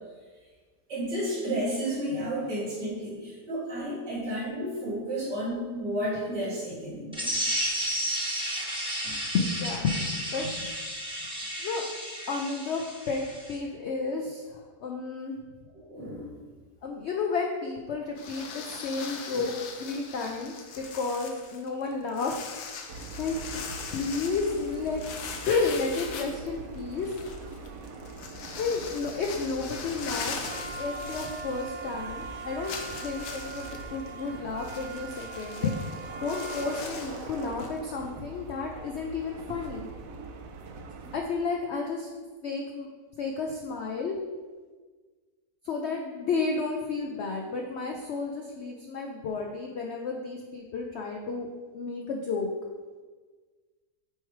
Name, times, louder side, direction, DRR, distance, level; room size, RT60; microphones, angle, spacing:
voice 1, 0.9-7.4 9.0-9.2 15.7-16.4 19.3-19.4, right 1 dB, 90° right, -11 dB, 2.5 m, -32 dB
sound 1, 7.1-13.5, equal, 5° right, 0.7 m, -32 dB
voice 2, 9.3-10.7 11.6-11.8 12.3-15.4 16.8-22.4 23.2-23.4 23.9-25.0 25.4-27.1 28.6-35.8 36.2-39.9 41.1-42.1 42.4-42.9 43.2-44.2 45.6-51.5 51.7-52.5, left 4 dB, 85° left, 1 dB, 0.6 m, -32 dB
sound 2, 18.2-31.9 32.2-32.3 32.6-37.8, left 5 dB, 70° left, 1.2 m, -41 dB
sound 3, 22.9-41.2, right 4 dB, 65° right, 0.9 m, -41 dB
7.8 x 3.1 x 4.6 m, 1.4 s
omnidirectional pair, 1.8 m